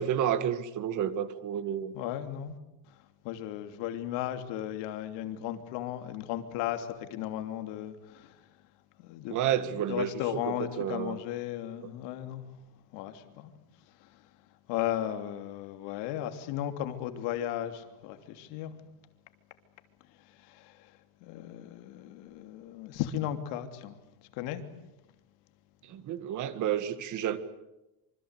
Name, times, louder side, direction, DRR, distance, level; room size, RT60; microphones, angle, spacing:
voice 1, 0.0-1.9 9.3-11.2 11.8-11.9 25.8-27.4, right 10 dB, 45° right, 1.9 m, -31 dB
voice 2, 1.9-2.6 3.2-8.4 9.0-9.4 9.7-12.4 12.9-13.5 14.0-14.2 14.7-18.7 20.4-20.9 21.2-24.0 24.3-24.6, left 12 dB, 80° left, 3.1 m, -35 dB
26.5 x 25.5 x 8.3 m
cardioid pair, 165°, 42 cm